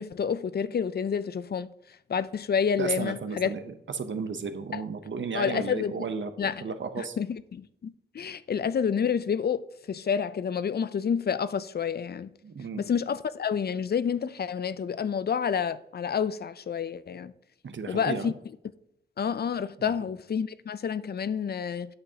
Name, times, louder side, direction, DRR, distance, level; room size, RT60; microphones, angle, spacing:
voice 1, 0.0-1.7 2.1-3.5 4.7-4.8 5.3-5.9 6.4-6.5 7.0-12.3 12.8-17.3 17.9-18.3 19.2-21.9, left 7 dB, 55° left, 0.4 m, -29 dB
voice 2, 2.8-7.2 12.4-12.8 17.6-18.3 19.8-20.1, right 5 dB, 75° right, 0.7 m, -34 dB
8.7 x 6.3 x 2.8 m
wide cardioid pair, 75°, 20 cm